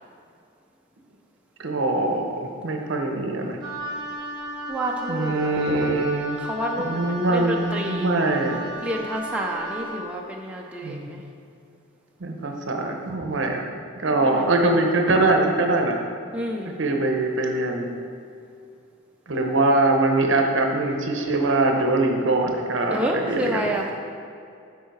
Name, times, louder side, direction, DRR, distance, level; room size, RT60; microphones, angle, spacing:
voice 1, 1.6-3.6 5.1-6.4 6.8-8.6 10.8-11.1 12.2-13.6 13.9-16.0 16.8-17.9 19.3-23.7, right 2 dB, 65° right, 3 dB, 0.8 m, -23 dB
Wind instrument woodwind instrument, 3.6-10.1, right 1 dB, 20° right, 1.1 m, -34 dB
voice 2, 4.7-5.6 6.4-8.1 8.8-11.2 14.2-14.5 16.3-16.7 22.9-23.9, equal, 5° right, -1 dB, 0.4 m, -29 dB
7.3 x 4.6 x 4.6 m, 2.5 s
head